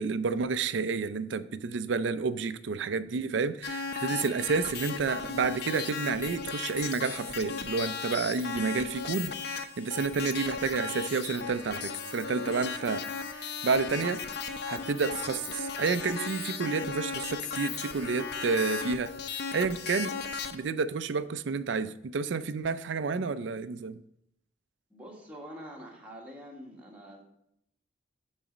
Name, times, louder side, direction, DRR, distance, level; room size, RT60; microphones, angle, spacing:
voice 1, 0.0-13.0 13.3-14.2 14.7-19.1 19.5-20.1 20.5-24.0, right 4 dB, 75° right, 13 dB, 0.4 m, -30 dB
sound 1, 3.6-20.5, left 5 dB, 55° left, 0.6 m, -36 dB
Trumpet, 11.0-19.0, left 2 dB, 75° left, 1.1 m, -46 dB
voice 2, 24.9-27.2, equal, 5° right, -2 dB, 1.4 m, -46 dB
9.9 x 4.0 x 5.0 m, 0.76 s
head